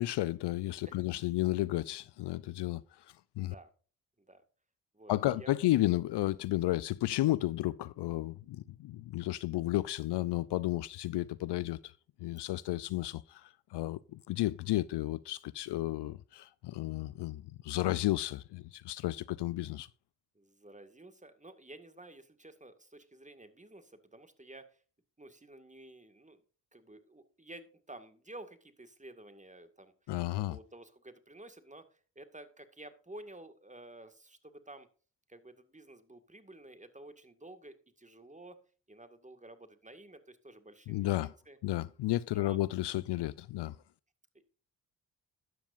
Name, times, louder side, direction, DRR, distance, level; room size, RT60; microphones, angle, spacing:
voice 1, 0.0-3.1 3.4-3.5 5.1-11.9 12.2-19.9 30.1-30.6 40.9-41.3 41.6-43.8, left 16 dB, 60° left, 0.5 m, -32 dB
voice 2, 3.4-3.7 4.2-4.4 4.9-5.5 20.4-24.8 25.2-26.4 26.7-29.9 30.5-34.9 35.3-38.6 38.9-41.1 41.5-41.6 42.3-42.6 44.3-44.4, right 1 dB, 15° right, 1.9 m, -52 dB
12.5 x 9.4 x 2.6 m
hypercardioid pair, 45°, 47 cm